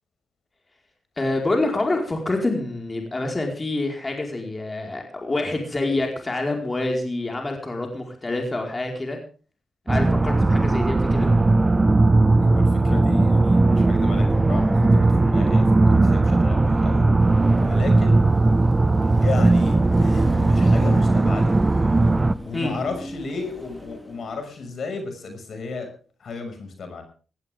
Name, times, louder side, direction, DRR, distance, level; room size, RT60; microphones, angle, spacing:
voice 1, 1.2-9.2 9.9-11.3 22.5-22.7, left 2 dB, 30° left, 2 dB, 4.7 m, -26 dB
sound 1, 9.9-22.3, right 2 dB, 25° right, 0.8 m, -18 dB
voice 2, 12.4-17.0 17.6-18.2 19.2-21.6 22.4-25.9 26.2-27.0, left 4 dB, 65° left, 6 dB, 6.0 m, -33 dB
Car passing by / Traffic noise roadway noise / Engine, 17.2-24.5, equal, 5° right, 2.1 m, -37 dB
18.0 x 16.0 x 3.6 m, 0.38 s
cardioid pair, 60°, 0 cm